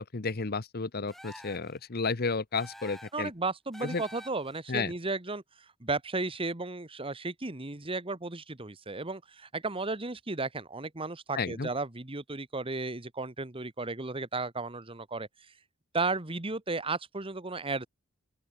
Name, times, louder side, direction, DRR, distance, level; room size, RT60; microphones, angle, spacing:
voice 1, 0.0-3.3 3.8-4.0 4.7-4.9 11.3-11.7, left 4 dB, 50° left, 1.0 m, -32 dB
sound 1, 1.1-1.8 2.6-3.3 3.7-4.6, equal, ahead, 7.9 m, -48 dB
voice 2, 3.1-5.4 5.8-15.3 15.9-17.9, right 3 dB, 25° right, 1.6 m, -34 dB
open air
head